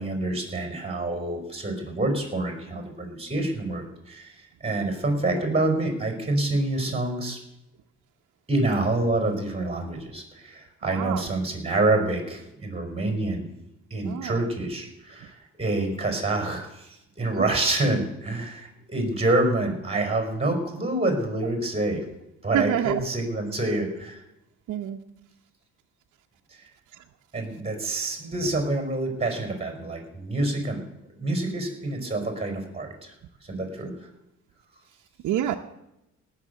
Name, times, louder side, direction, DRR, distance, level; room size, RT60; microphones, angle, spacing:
voice 1, 0.0-7.4 8.5-13.5 13.9-22.0 22.4-24.2 26.5-26.7 27.3-30.8 31.2-33.1 33.4-34.1, right 2 dB, 20° right, 4 dB, 4.6 m, -27 dB
voice 2, 10.8-11.2 14.0-14.4 22.5-23.0 24.7-25.0 35.2-35.5, right 11 dB, 75° right, 2 dB, 0.8 m, -26 dB
18.0 x 6.7 x 8.3 m, 0.91 s
cardioid pair, 90°, 30 cm